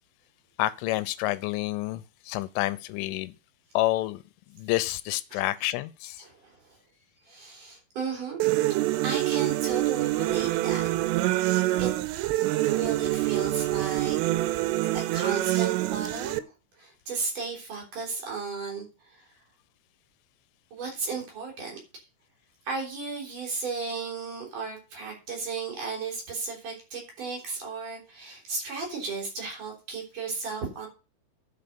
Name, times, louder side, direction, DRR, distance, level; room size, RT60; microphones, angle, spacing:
voice 1, 0.6-3.3 3.7-4.2 4.6-6.2, left 17 dB, 85° left, 3.1 m, -28 dB
voice 2, 6.2-6.8 7.3-8.4 9.0-10.9 11.2-11.4 11.8-11.9 12.6-14.2 14.9-16.4 16.8-19.3 20.7-21.8 22.7-30.9, right 4 dB, 45° right, 5.3 m, -34 dB
sound 1, 8.4-16.4, right 17 dB, 85° right, 3.4 m, -26 dB
10.5 x 5.8 x 6.8 m
omnidirectional pair, 5.7 m